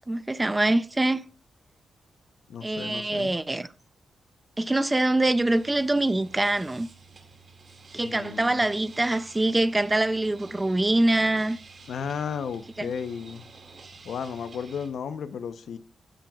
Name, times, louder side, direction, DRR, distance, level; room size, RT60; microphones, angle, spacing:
voice 1, 0.1-1.2 2.6-3.7 4.6-6.9 7.9-11.6 12.8-12.9, right 2 dB, 15° right, 0.5 m, -24 dB
voice 2, 2.5-3.3 8.0-8.7 11.9-13.4 14.0-15.8, left 7 dB, 70° left, 0.8 m, -34 dB
sound 1, 5.1-14.9, right 4 dB, 40° right, 2.2 m, -50 dB
15.5 x 9.0 x 2.4 m
wide cardioid pair, 160°, 0 cm